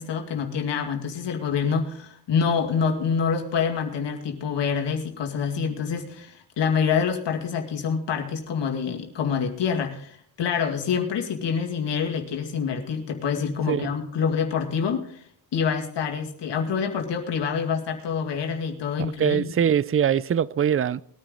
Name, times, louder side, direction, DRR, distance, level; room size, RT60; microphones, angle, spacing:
voice 1, 0.0-15.2 15.5-19.5, left 6 dB, 80° left, 2.3 m, -26 dB
voice 2, 19.2-21.0, right 8 dB, 30° right, 0.5 m, -22 dB
20.5 x 10.0 x 3.8 m
cardioid pair, 105°, 42 cm